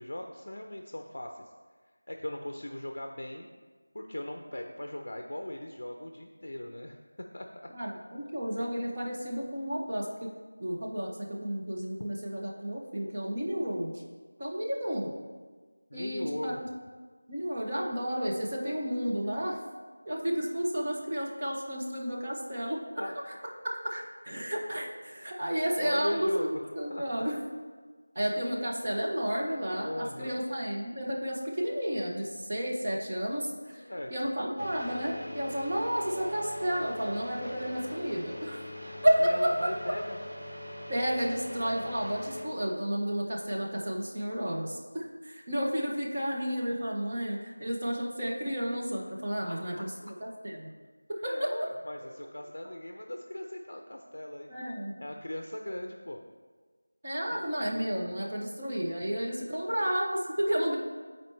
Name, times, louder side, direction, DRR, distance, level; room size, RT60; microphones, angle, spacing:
voice 1, 0.0-1.4 2.1-3.5 3.9-7.7 15.9-16.8 23.0-23.1 25.8-26.6 26.9-27.2 29.8-30.4 33.8-34.3 39.2-40.2 49.4-49.8 51.3-54.5 55.0-56.2 57.3-57.4, left 1 dB, 50° left, 3 dB, 0.5 m, -39 dB
voice 2, 7.7-10.3 10.6-13.9 14.4-15.1 15.9-16.6 17.3-19.6 20.1-23.3 23.6-27.4 28.1-33.8 34.1-38.6 39.0-39.5 40.9-50.7 51.1-51.7 54.5-54.9 57.0-60.8, equal, 20° right, -4 dB, 0.6 m, -31 dB
sound 1, 34.6-42.4, left 1 dB, 35° right, 1.7 m, -42 dB
12.5 x 4.3 x 3.2 m, 1.4 s
figure-of-eight pair, 180°, 0 cm